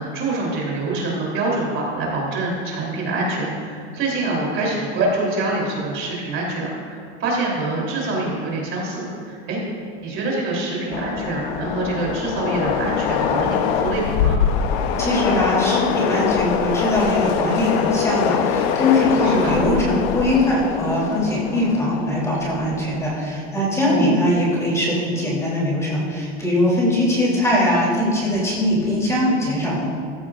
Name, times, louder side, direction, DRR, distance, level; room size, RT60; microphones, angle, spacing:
voice 1, 0.0-9.6 10.0-14.4 19.2-19.6 23.9-24.1, right 2 dB, 35° right, -3 dB, 3.4 m, -25 dB
Train, 10.9-23.2, left 7 dB, 60° left, 0.9 m, -23 dB
voice 2, 15.0-29.9, left 1 dB, 10° left, -6 dB, 3.1 m, -21 dB
15.5 x 15.0 x 2.5 m, 2.3 s
supercardioid pair, 150°, 34 cm